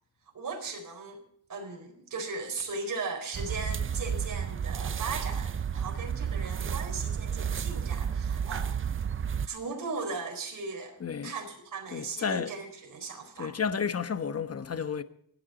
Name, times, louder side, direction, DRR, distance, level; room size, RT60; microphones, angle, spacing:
voice 1, 0.3-1.2 1.5-8.8 9.4-11.0 11.2-13.5, right 4 dB, 45° right, 4.5 m, -37 dB
sound 1, 3.3-9.5, right 7 dB, 30° right, 0.5 m, -32 dB
voice 2, 11.0-11.3 11.9-12.5 13.4-15.0, left 6 dB, 30° left, 1.0 m, -31 dB
24.5 x 9.7 x 4.0 m
cardioid pair, 100°, 45 cm